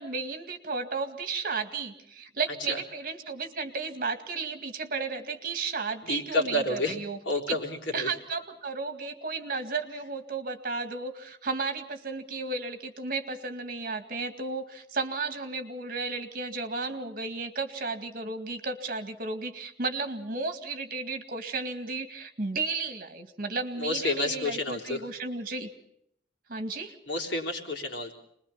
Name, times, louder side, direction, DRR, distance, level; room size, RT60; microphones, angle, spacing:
voice 1, 0.0-7.2 7.5-7.6 7.9-25.7 26.5-26.9, right 4 dB, 50° right, 7 dB, 2.1 m, -33 dB
voice 2, 6.0-7.0 7.3-8.1 23.8-25.0 27.1-28.1, left 2 dB, 90° left, 1 dB, 3.8 m, -29 dB
27.5 x 21.0 x 5.8 m, 0.72 s
head